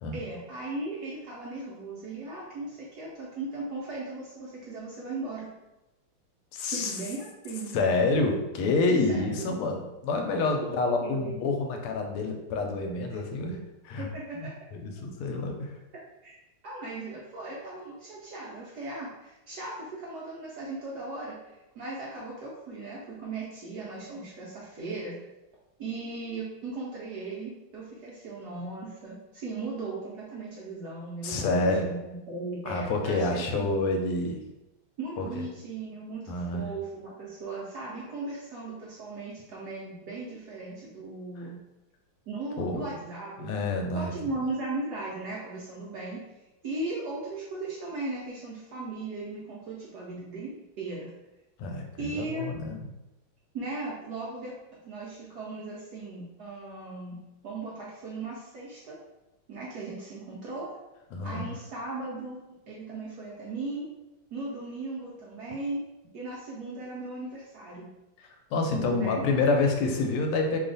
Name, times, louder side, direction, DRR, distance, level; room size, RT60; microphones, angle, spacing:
voice 1, 0.1-5.5 6.6-7.7 9.1-9.5 10.6-11.4 14.0-14.5 16.2-16.3 16.6-21.4 21.7-25.2 25.8-33.7 35.0-41.6 42.3-43.5 43.9-46.2 46.6-51.1 52.0-52.5 53.5-54.5 54.8-57.2 57.4-59.0 59.5-60.7 61.2-63.9 64.3-65.8 66.1-67.9 68.9-69.2, right 2 dB, 70° right, -5 dB, 0.9 m, -37 dB
voice 2, 6.5-6.9 7.7-13.6 13.8-14.1 14.4-15.7 31.2-31.9 32.7-34.4 35.2-35.4 36.3-36.7 42.6-42.8 43.4-44.1 51.6-52.8 61.1-61.5 68.2-70.6, left 3 dB, 90° left, 3 dB, 1.5 m, -28 dB
3.3 x 2.4 x 3.8 m, 0.97 s
omnidirectional pair, 2.3 m